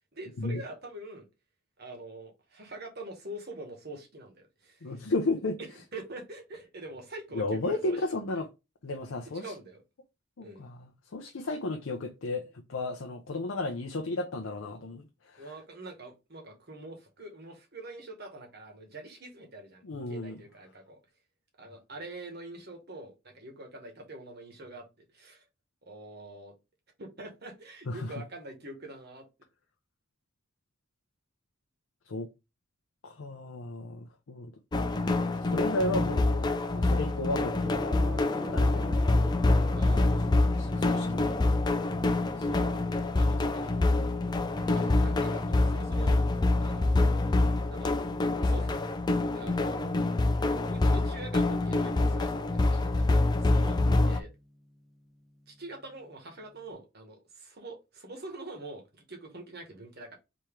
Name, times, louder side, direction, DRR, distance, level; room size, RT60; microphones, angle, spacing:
voice 1, 0.1-1.3 1.8-5.0 5.6-8.0 9.3-9.8 10.4-10.6 15.4-21.0 21.6-25.4 25.8-26.5 27.0-29.3 38.5-39.1 39.7-41.1 42.3-42.7 43.1-43.9 44.6-47.0 47.7-48.0 48.4-48.8 49.1-49.8 50.7-54.3 55.5-60.2, right 2 dB, 50° right, 1.3 m, -45 dB
voice 2, 4.8-5.6 7.3-8.5 8.8-9.5 10.4-15.5 19.8-20.3 27.9-28.1 32.0-32.3 33.0-34.5 35.3-36.5 36.7-37.7 38.4-38.8 40.4-41.3 44.7-44.8 53.8-53.9, left 2 dB, 75° left, 0.6 m, -33 dB
sound 1, 34.7-54.2, left 2 dB, 20° left, 0.3 m, -26 dB
Gong, 37.6-56.6, left 1 dB, ahead, 0.7 m, -46 dB
3.6 x 3.0 x 4.5 m
head